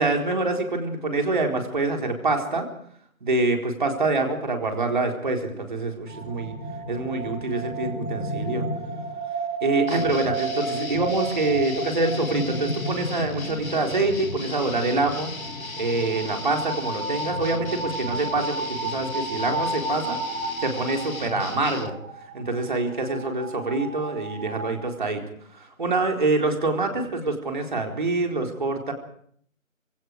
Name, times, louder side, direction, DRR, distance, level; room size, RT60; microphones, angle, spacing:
voice 1, 0.0-2.7 3.2-6.5 6.9-8.7 9.6-15.3 15.8-20.2 20.6-22.0 22.3-25.2 25.5-28.9, right 2 dB, 35° right, 2 dB, 4.2 m, -25 dB
sound 1, 6.1-24.8, right 2 dB, 15° right, 4.5 m, -33 dB
sound 2, 9.9-21.9, left 3 dB, 80° left, 2.5 m, -37 dB
26.5 x 24.0 x 4.8 m, 0.62 s
figure-of-eight pair, 175°, 41 cm